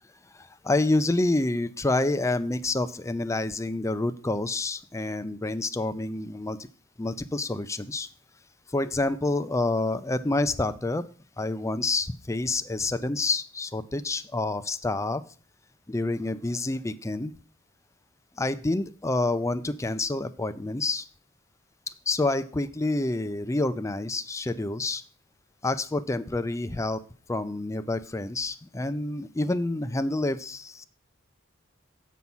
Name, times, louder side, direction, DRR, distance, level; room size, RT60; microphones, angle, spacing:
voice 1, 0.3-6.6 7.0-8.1 8.7-11.0 11.4-15.2 15.9-17.3 18.4-21.0 22.1-25.0 25.6-27.0 27.3-30.8, left 2 dB, 15° left, 11 dB, 0.5 m, -28 dB
8.3 x 5.6 x 6.1 m, 0.39 s
head